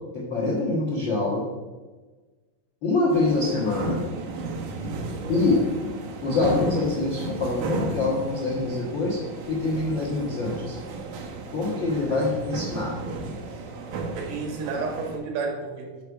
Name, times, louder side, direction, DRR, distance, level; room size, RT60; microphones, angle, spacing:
voice 1, 0.1-1.4 2.8-4.0 5.3-5.6 6.2-9.2 9.5-10.8 11.5-12.9, left 3 dB, 85° left, -4 dB, 1.0 m, -25 dB
sound 1, 3.1-15.2, right 3 dB, 70° right, 2.0 m, -34 dB
voice 2, 14.1-16.0, right 4 dB, 90° right, 1 dB, 3.7 m, -31 dB
8.9 x 5.4 x 4.8 m, 1.3 s
omnidirectional pair, 4.8 m